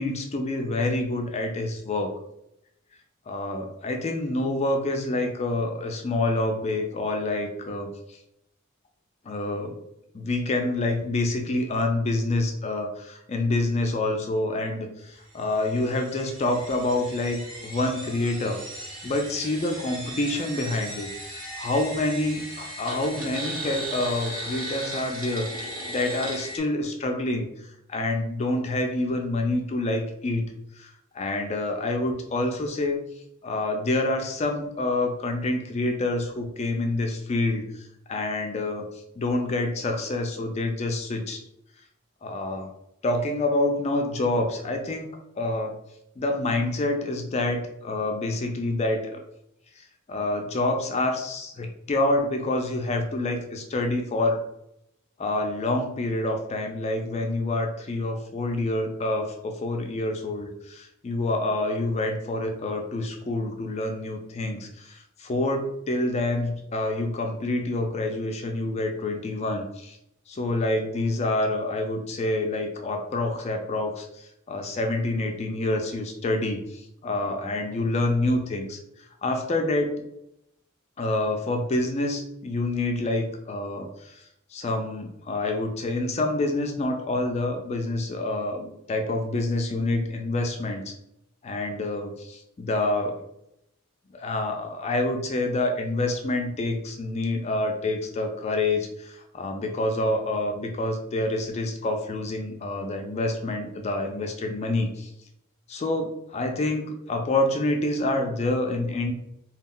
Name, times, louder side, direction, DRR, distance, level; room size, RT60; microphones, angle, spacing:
voice 1, 0.0-2.2 3.3-8.2 9.2-9.8 10.1-18.6 19.0-33.0 33.4-38.9 39.2-41.4 42.2-42.7 43.0-45.1 45.4-45.8 46.2-49.2 50.1-54.4 55.2-70.0 70.3-78.8 79.2-80.0 81.0-84.2 84.5-90.9 91.4-93.2 94.1-105.1 105.7-109.1, left 2 dB, 30° left, 3 dB, 0.3 m, -27 dB
sound 1, 15.4-26.6, right 1 dB, 75° right, 0.9 m, -37 dB
2.3 x 2.1 x 3.6 m, 0.79 s
head